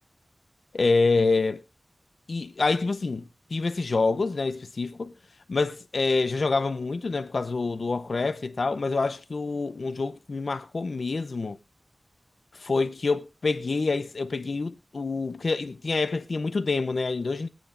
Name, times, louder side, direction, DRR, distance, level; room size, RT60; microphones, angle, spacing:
voice 1, 0.7-1.6 2.3-5.1 5.5-11.6 12.5-17.5, left 3 dB, 75° left, 0.6 m, -27 dB
22.5 x 9.2 x 2.5 m
wide cardioid pair, 75°, 0 cm